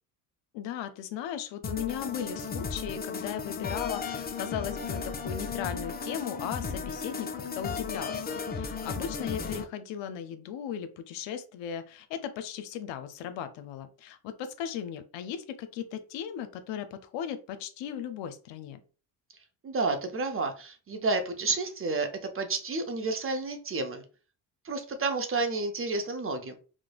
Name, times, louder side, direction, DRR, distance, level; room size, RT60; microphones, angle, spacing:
voice 1, 0.5-18.8, left 9 dB, 70° left, 9 dB, 0.6 m, -37 dB
sound 1, 1.6-9.6, left 5 dB, 20° left, 0.4 m, -35 dB
voice 2, 19.6-22.1 22.3-24.0 24.6-26.6, right 3 dB, 30° right, 6 dB, 0.6 m, -30 dB
3.1 x 2.1 x 2.3 m, 0.36 s
supercardioid pair, 60°, 46 cm